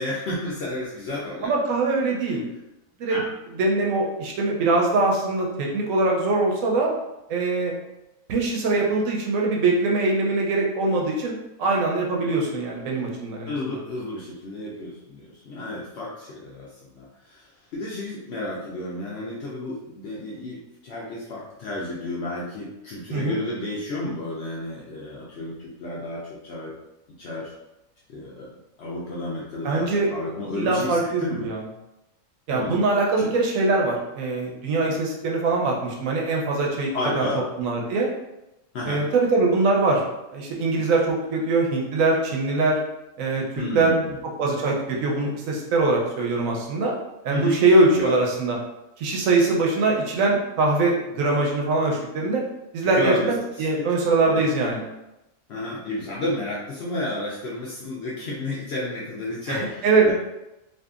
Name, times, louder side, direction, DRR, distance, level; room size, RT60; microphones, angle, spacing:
voice 1, 0.0-1.5 3.1-3.2 13.5-16.7 16.9-26.7 27.2-27.5 28.1-28.5 28.8-31.5 32.5-32.8 33.2-33.3 34.8-34.9 36.9-37.4 38.7-39.0 43.5-44.2 47.3-48.2 52.8-53.3 53.6-53.9 54.2-54.4 55.5-60.1, left 2 dB, 85° left, -6 dB, 0.5 m, -32 dB
voice 2, 1.4-2.5 3.0-3.2 3.6-6.9 7.3-7.7 8.3-11.3 11.6-13.8 23.1-23.4 29.6-30.1 30.5-31.6 32.5-36.9 37.2-37.3 37.6-38.1 38.8-40.0 40.3-42.8 43.2-43.9 44.4-46.9 47.2-48.6 49.0-52.4 52.7-54.8 59.5-60.1, right 3 dB, 70° right, -1 dB, 0.9 m, -22 dB
2.7 x 2.4 x 2.3 m, 0.93 s
omnidirectional pair, 1.7 m